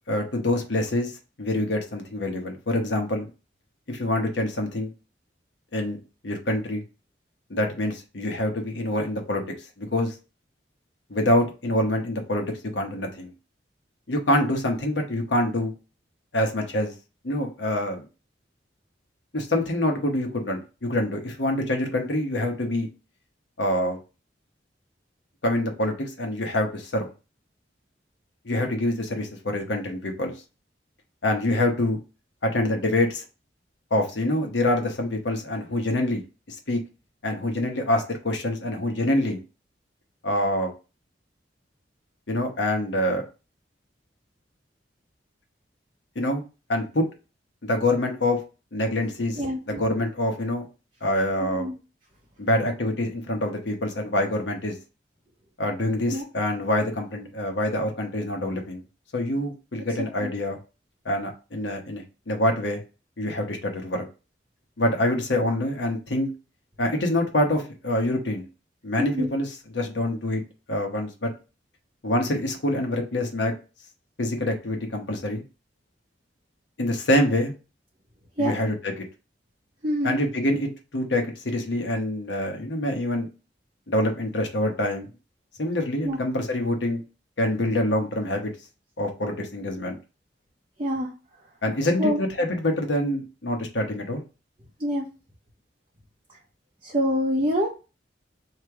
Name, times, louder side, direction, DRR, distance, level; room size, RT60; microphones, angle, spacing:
voice 1, 0.1-1.1 1.4-3.3 3.9-4.9 5.7-6.0 6.2-6.8 7.5-9.4 9.8-10.1 11.1-12.5 12.7-13.3 14.1-15.7 16.3-16.9 17.2-18.0 19.3-22.9 23.6-24.0 25.4-27.1 28.4-30.3 31.2-32.0 32.4-33.2 33.9-36.8 37.2-39.4 40.2-40.7 42.3-43.2 46.1-46.4 46.7-47.1 47.6-48.4 48.7-49.4 49.7-50.6 51.0-51.7 52.4-54.7 55.6-58.8 59.1-60.6 61.0-62.8 63.2-64.0 64.8-66.3 66.8-68.5 68.8-70.4 70.7-71.3 72.0-73.5 74.2-75.4 76.8-77.5 78.4-79.0 80.0-83.3 83.9-85.1 85.6-87.0 87.4-88.5 89.0-90.0 91.6-94.2, left 1 dB, 75° left, 3 dB, 1.1 m, -25 dB
voice 2, 49.4-49.8 51.4-51.7 56.1-56.2 69.0-69.3 78.4-78.5 79.8-80.2 86.0-86.2 90.8-91.1 92.0-92.2 94.8-95.0 96.8-97.7, equal, 30° right, -3 dB, 0.9 m, -25 dB
3.2 x 2.9 x 4.6 m, 0.31 s
head